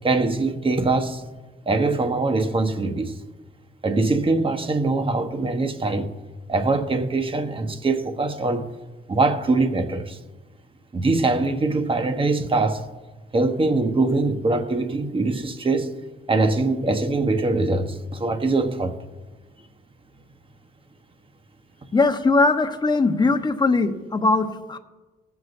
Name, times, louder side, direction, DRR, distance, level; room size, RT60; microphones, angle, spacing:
voice 1, 0.0-1.2 1.7-3.2 3.8-6.1 6.5-8.7 9.1-10.2 10.9-12.8 13.3-16.0 16.3-18.9, right 3 dB, 25° right, 1.1 m, -22 dB
voice 2, 21.9-24.8, left 3 dB, 20° left, 0.9 m, -20 dB
19.0 x 8.0 x 2.6 m
cardioid pair, 90°, 20 cm